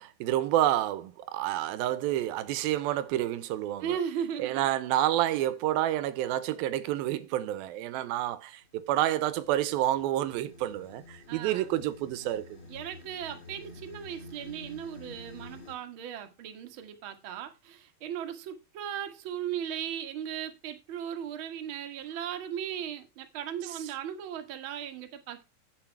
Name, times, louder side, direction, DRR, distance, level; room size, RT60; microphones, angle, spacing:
voice 1, 0.0-4.0 4.4-12.6, right 13 dB, 85° right, 2.6 m, -29 dB
voice 2, 3.8-4.7 7.9-8.0 11.3-11.7 12.7-25.4, right 9 dB, 50° right, 1.6 m, -37 dB
sound 1, 8.6-15.7, left 1 dB, 30° left, 2.9 m, -49 dB
8.6 x 8.3 x 4.5 m
omnidirectional pair, 4.2 m